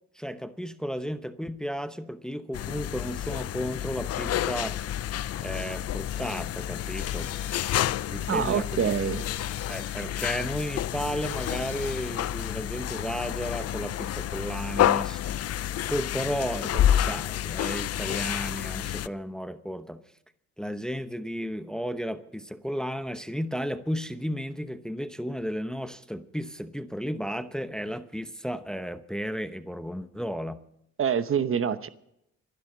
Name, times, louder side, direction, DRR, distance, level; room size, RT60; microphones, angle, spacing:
voice 1, 0.1-4.9 5.4-7.3 8.1-8.9 9.7-15.4 15.9-20.0 20.6-30.6, equal, ahead, 11 dB, 0.8 m, -33 dB
sound 1, 2.5-19.1, left 11 dB, 55° left, 0.5 m, -29 dB
sound 2, 5.9-12.3, left 10 dB, 85° left, 2.4 m, -45 dB
voice 2, 8.3-9.2 31.0-31.9, right 7 dB, 45° right, 12 dB, 1.0 m, -26 dB
25.0 x 12.0 x 3.9 m, 0.78 s
cardioid pair, 90°, 30 cm